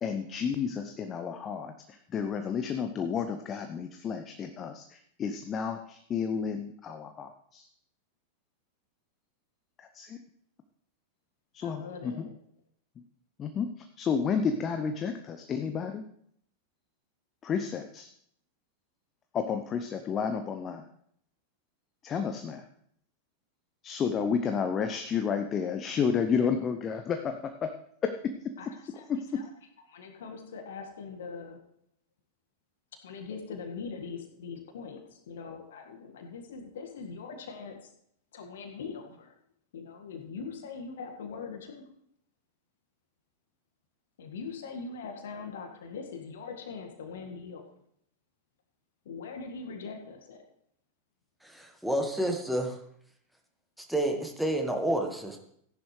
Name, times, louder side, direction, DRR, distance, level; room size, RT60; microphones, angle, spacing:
voice 1, 0.0-7.7 9.8-10.2 11.5-12.3 13.4-16.0 17.4-18.1 19.3-20.9 22.0-22.7 23.8-27.7 28.0-28.4 29.1-29.4, left 6 dB, 25° left, 7 dB, 0.7 m, -31 dB
voice 2, 11.6-12.3 28.6-28.7 29.0-29.1 29.3-29.4 29.9-31.7 33.0-37.9 38.3-39.3 39.7-41.8 44.2-47.6 49.1-50.4, left 5 dB, 60° left, 4 dB, 1.7 m, -41 dB
voice 3, 51.4-52.8 53.8-55.4, right 1 dB, ahead, 3 dB, 1.6 m, -30 dB
14.5 x 10.5 x 3.2 m, 0.68 s
figure-of-eight pair, 90°, 0 cm